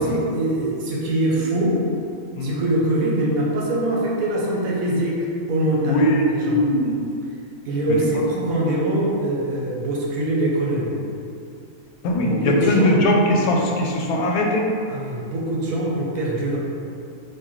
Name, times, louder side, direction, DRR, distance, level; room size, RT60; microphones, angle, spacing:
voice 1, 0.0-1.9 2.4-6.7 7.6-11.0 12.2-12.9 14.9-16.6, right 1 dB, 70° right, -4 dB, 1.0 m, -23 dB
voice 2, 5.9-7.0 8.1-8.2 12.0-14.7, left 1 dB, 80° left, 0 dB, 1.0 m, -20 dB
3.8 x 2.6 x 3.0 m, 2.5 s
omnidirectional pair, 1.6 m